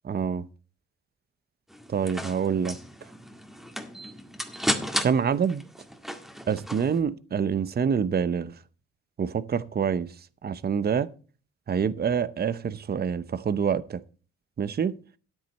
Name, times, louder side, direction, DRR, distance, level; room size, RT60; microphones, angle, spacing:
voice 1, 0.0-0.5 1.9-2.8 5.0-5.6 6.5-8.5 9.2-10.1 10.4-11.1 11.7-14.0 14.6-15.0, right 7 dB, 35° right, 0.7 m, -26 dB
sound 1, 1.7-7.0, equal, ahead, 1.9 m, -34 dB
13.0 x 9.3 x 4.1 m
cardioid pair, 90°, 30 cm